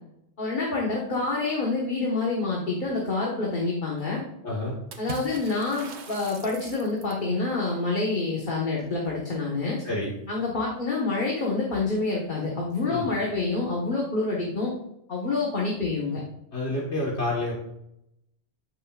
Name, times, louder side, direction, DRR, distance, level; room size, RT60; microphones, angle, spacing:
voice 1, 0.4-4.2 5.0-9.8 10.3-14.7 15.1-16.2, left 3 dB, 45° left, -3 dB, 1.5 m, -27 dB
voice 2, 4.4-4.8 9.8-10.1 12.8-13.1 16.5-17.5, left 1 dB, 80° left, -4 dB, 1.9 m, -28 dB
Water / Splash splatter, 4.9-7.3, right 4 dB, 75° right, 1.2 m, -41 dB
13.0 x 6.9 x 2.4 m, 0.80 s
omnidirectional pair, 1.1 m